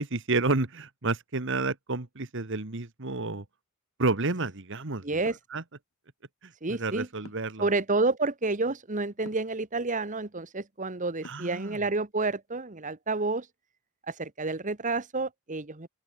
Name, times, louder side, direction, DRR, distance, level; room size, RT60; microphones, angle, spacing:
voice 1, 0.0-3.4 4.0-5.0 5.5-5.6 6.7-7.7 11.2-11.8, right 3 dB, 60° right, 1.7 m, -30 dB
voice 2, 5.0-5.4 6.6-7.1 7.6-13.5 14.1-15.9, right 3 dB, 35° right, 1.5 m, -29 dB
sound 1, 5.3-5.5 7.2-7.6 9.2-9.5 11.2-11.6, left 2 dB, 70° left, 2.5 m, -48 dB
open air
head